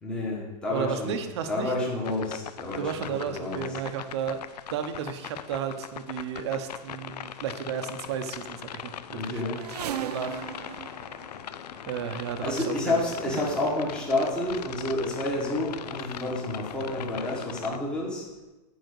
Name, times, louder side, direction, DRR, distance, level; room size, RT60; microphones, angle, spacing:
voice 1, 0.0-1.2 1.5-3.8 9.1-9.6 12.4-18.2, left 2 dB, 5° left, -4 dB, 1.1 m, -29 dB
voice 2, 0.7-1.7 2.8-4.4 4.7-8.9 9.3-10.9 11.9-13.0 13.3-13.4, right 7 dB, 40° right, 8 dB, 0.8 m, -33 dB
sound 1, 2.0-17.8, left 10 dB, 70° left, 0.6 m, -40 dB
sound 2, 9.5-12.0 13.0-13.2 14.0-14.1 14.3-15.2 15.5-16.0 16.7-16.8 17.2-17.3, right 11 dB, 70° right, 0.4 m, -39 dB
9.2 x 4.9 x 6.5 m, 1.1 s
supercardioid pair, 180°, 21 cm